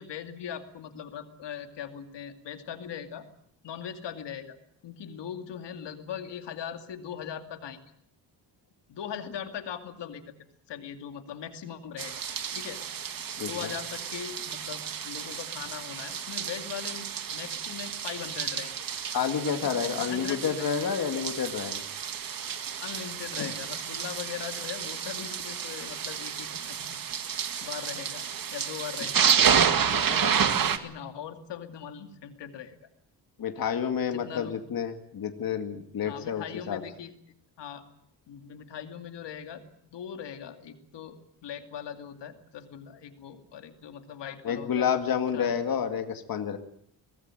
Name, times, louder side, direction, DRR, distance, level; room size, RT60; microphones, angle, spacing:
voice 1, 0.0-3.3 3.6-4.6 4.8-7.8 8.9-10.3 10.7-12.1 12.5-12.8 13.4-18.7 19.5-20.7 22.8-27.0 27.6-28.2 28.5-29.4 29.7-32.8 34.1-34.5 36.0-37.1 37.6-37.8 38.3-44.9 45.3-45.8, left 8 dB, 90° left, 6 dB, 2.5 m, -40 dB
sound 1, 12.0-30.8, right 7 dB, 55° right, 1.9 m, -30 dB
voice 2, 13.4-13.7 19.1-21.8 23.4-23.5 29.7-29.8 30.1-30.3 33.4-36.8 44.4-46.6, left 7 dB, 55° left, 6 dB, 2.2 m, -29 dB
23.5 x 18.5 x 9.0 m, 0.69 s
wide cardioid pair, 145°, 41 cm